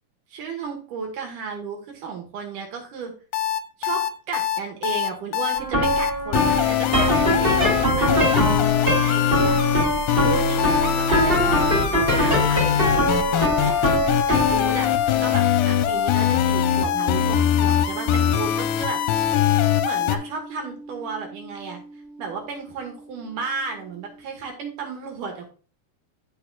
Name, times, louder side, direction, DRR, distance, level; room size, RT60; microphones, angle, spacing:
voice 1, 0.3-3.1 3.8-8.1 8.8-9.6 10.2-13.0 13.3-14.0 14.3-14.9 15.2-19.0 19.8-21.8 22.2-25.5, right 5 dB, 60° right, 2 dB, 2.6 m, -33 dB
sound 1, 3.3-20.2, left 10 dB, 80° left, 2.2 m, -22 dB
sound 2, 5.6-22.8, equal, 30° right, 1.0 m, -25 dB
14.5 x 4.8 x 2.3 m, 0.38 s
omnidirectional pair, 4.5 m